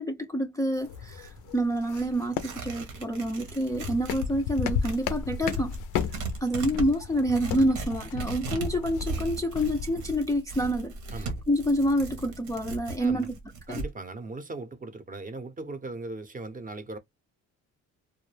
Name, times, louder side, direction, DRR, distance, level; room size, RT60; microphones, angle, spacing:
voice 1, 0.0-5.7 6.4-11.0 11.5-13.4 13.7-13.8, equal, 10° left, 0.3 m, -27 dB
Tearing, 0.6-4.3 4.6-13.9, right 3 dB, 85° right, 1.0 m, -38 dB
sound 1, 0.8-10.1, left 7 dB, 85° left, 0.4 m, -35 dB
voice 2, 11.1-11.4 13.0-13.3 13.7-17.0, right 3 dB, 25° right, 0.6 m, -38 dB
2.3 x 2.1 x 3.2 m
cardioid pair, 90°, 30 cm